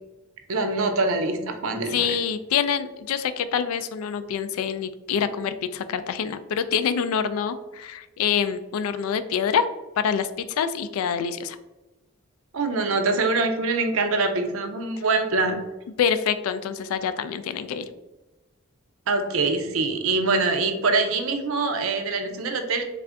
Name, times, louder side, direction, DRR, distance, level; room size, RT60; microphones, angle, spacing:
voice 1, 0.5-2.1 12.5-15.6 19.1-22.8, right 3 dB, 75° right, 6 dB, 0.5 m, -24 dB
voice 2, 1.9-9.7 10.0-11.6 16.0-17.8, left 7 dB, 85° left, 12 dB, 0.3 m, -26 dB
3.5 x 2.4 x 3.4 m, 1.1 s
head